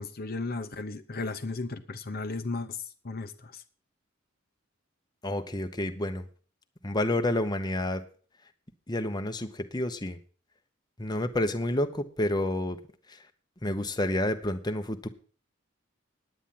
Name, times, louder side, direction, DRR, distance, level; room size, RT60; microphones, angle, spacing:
voice 1, 0.0-3.6, left 3 dB, 50° left, 0.9 m, -35 dB
voice 2, 5.2-6.3 6.8-8.0 8.9-10.2 11.0-12.8 13.1-13.2 13.6-15.1, left 1 dB, 20° left, 1.0 m, -29 dB
10.0 x 9.1 x 7.4 m
head